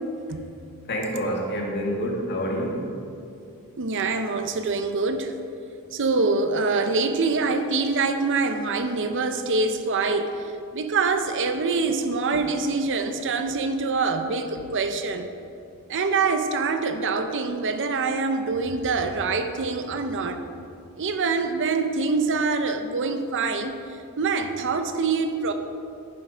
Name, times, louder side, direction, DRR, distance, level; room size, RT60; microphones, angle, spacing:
voice 1, 0.9-2.9, equal, 50° left, -1 dB, 1.8 m, -27 dB
voice 2, 3.8-5.3 5.9-10.3 10.7-15.3 15.9-20.4 21.0-23.7 24.2-25.5, right 4 dB, 60° right, 8 dB, 0.7 m, -25 dB
10.5 x 7.4 x 5.0 m, 2.5 s
head